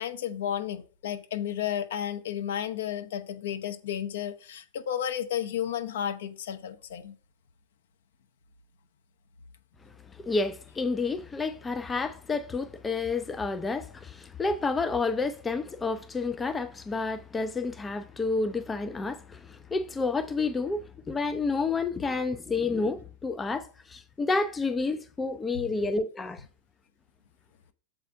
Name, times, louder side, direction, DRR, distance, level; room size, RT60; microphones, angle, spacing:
voice 1, 0.0-7.2 25.5-25.7, left 10 dB, 60° left, 0.8 m, -32 dB
voice 2, 10.2-26.4, left 3 dB, 15° left, 0.5 m, -30 dB
6.9 x 4.2 x 5.7 m
figure-of-eight pair, 90°, 0 cm